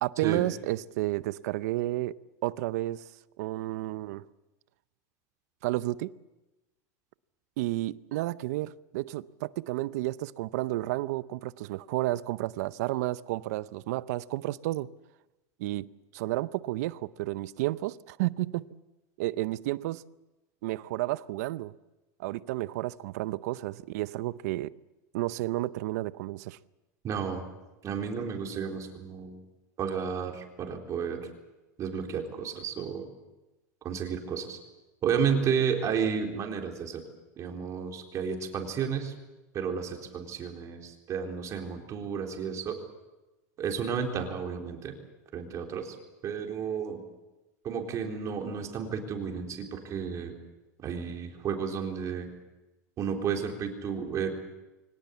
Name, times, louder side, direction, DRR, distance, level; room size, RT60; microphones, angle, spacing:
voice 1, 0.0-3.1 3.4-4.2 5.6-6.1 7.6-14.9 15.6-18.7 19.2-20.0 20.6-21.7 22.2-24.7 25.1-26.6, right 17 dB, 70° right, 0.7 m, -31 dB
voice 2, 27.0-27.4 27.8-29.4 29.8-31.2 31.8-33.1 33.8-34.6 35.0-37.0 37.4-39.1 39.5-42.8 43.6-44.9 45.3-46.0 46.2-47.0 47.6-50.3 50.8-52.3 53.0-54.4, right 6 dB, 35° right, 4.0 m, -32 dB
24.0 x 18.5 x 8.3 m
supercardioid pair, 125°, 9 cm